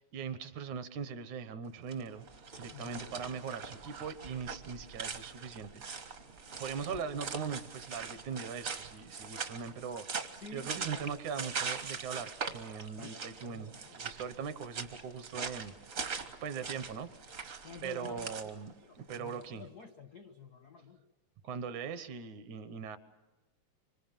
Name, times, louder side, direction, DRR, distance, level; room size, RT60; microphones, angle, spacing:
voice 1, 0.0-2.3 2.6-6.1 6.6-13.7 14.0-15.7 16.4-17.4 17.8-19.6 21.4-23.0, right 6 dB, 70° right, 12 dB, 2.5 m, -40 dB
sound 1, 1.8-19.4, right 5 dB, 50° right, 1.0 m, -42 dB
voice 2, 2.7-3.1 10.4-11.1 12.9-14.0 17.6-18.5 18.8-21.0, left 5 dB, 70° left, 7 dB, 0.9 m, -50 dB
26.5 x 25.5 x 7.4 m, 1.1 s
omnidirectional pair, 3.7 m